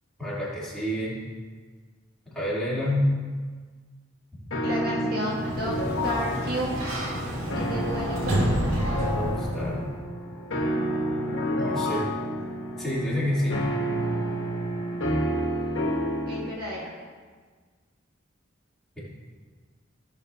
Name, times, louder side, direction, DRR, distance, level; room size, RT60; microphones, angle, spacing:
voice 1, 0.2-1.2 2.3-3.2 9.1-9.9 11.6-12.1 12.8-13.6, left 1 dB, ahead, -10 dB, 3.2 m, -28 dB
sound 1, 4.5-16.5, equal, 70° left, 1.3 m, -30 dB
voice 2, 4.6-5.8 6.0-6.7 7.5-8.4 11.8-12.0 16.3-16.9, equal, 50° right, -4 dB, 1.6 m, -32 dB
Sliding door, 5.1-9.9, equal, 85° right, 2.1 m, -29 dB
16.5 x 7.1 x 2.8 m, 1.5 s
head